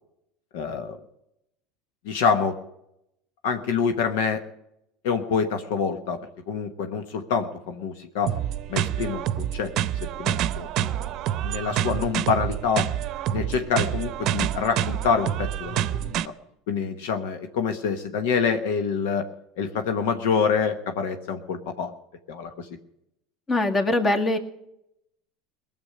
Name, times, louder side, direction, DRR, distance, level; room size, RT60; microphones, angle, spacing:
voice 1, 0.5-1.0 2.0-2.6 3.4-4.4 5.0-6.2 6.5-8.3 8.7-9.7 10.2-11.0 11.4-12.9 13.3-16.3 16.7-19.3 19.6-21.9 22.3-22.7, left 6 dB, 75° left, 7 dB, 1.1 m, -26 dB
sound 1, 8.3-16.3, right 11 dB, 55° right, 0.7 m, -27 dB
voice 2, 23.5-24.4, left 2 dB, 30° left, 5 dB, 2.0 m, -22 dB
19.0 x 7.2 x 9.7 m, 0.82 s
hypercardioid pair, 90°, 0 cm